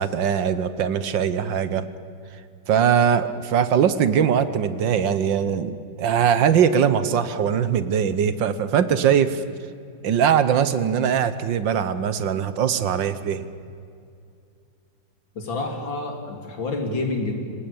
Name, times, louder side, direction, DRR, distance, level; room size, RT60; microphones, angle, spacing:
voice 1, 0.0-1.9 2.7-9.4 10.0-13.5, right 8 dB, 70° right, 13 dB, 1.6 m, -21 dB
voice 2, 15.4-17.3, left 3 dB, 70° left, 3 dB, 3.7 m, -28 dB
25.5 x 18.0 x 8.8 m, 2.4 s
omnidirectional pair, 2.2 m